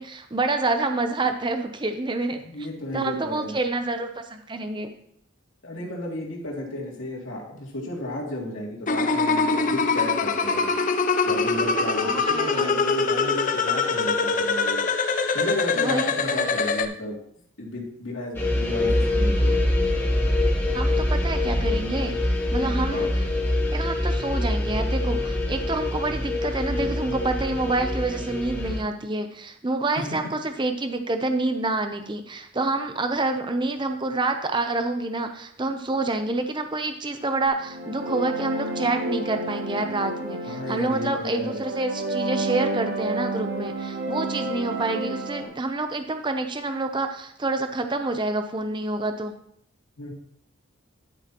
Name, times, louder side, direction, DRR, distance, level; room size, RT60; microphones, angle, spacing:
voice 1, 0.0-2.4 2.9-4.9 12.0-12.7 15.8-16.4 20.7-23.2 23.7-49.3, right 2 dB, 20° right, 7 dB, 0.6 m, -28 dB
voice 2, 2.4-3.6 5.6-10.7 11.2-14.8 15.3-17.2 17.6-19.5 22.6-23.1 30.0-30.1 40.4-41.6 50.0-50.1, left 1 dB, 70° left, -3 dB, 2.6 m, -33 dB
sound 1, 8.9-16.9, left 4 dB, 40° left, 0.5 m, -23 dB
sound 2, 18.3-28.8, left 1 dB, 10° left, 1.1 m, -24 dB
sound 3, 37.5-45.5, right 2 dB, 50° right, 2.1 m, -30 dB
11.5 x 7.9 x 3.0 m, 0.70 s
head